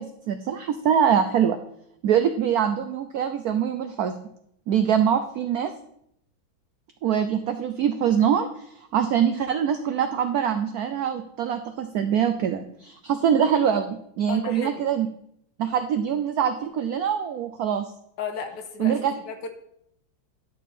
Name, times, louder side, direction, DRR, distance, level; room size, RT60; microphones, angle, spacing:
voice 1, 0.0-1.6 2.0-4.2 4.7-5.7 7.0-15.1 15.6-17.8 18.8-19.1, right 8 dB, 85° right, 8 dB, 0.8 m, -24 dB
voice 2, 14.3-14.8 18.2-19.5, left 6 dB, 65° left, 7 dB, 1.4 m, -34 dB
11.0 x 5.4 x 4.2 m, 0.72 s
omnidirectional pair, 2.2 m